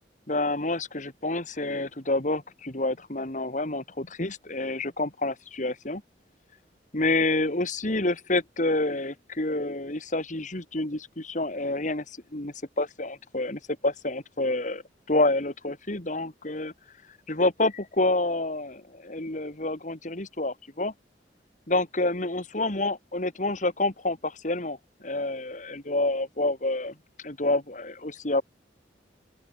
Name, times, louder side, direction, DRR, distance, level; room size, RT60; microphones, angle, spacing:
voice 1, 0.3-6.0 6.9-14.8 15.1-16.7 17.3-20.9 21.7-28.4, left 2 dB, 45° left, 2.5 m, -28 dB
open air
head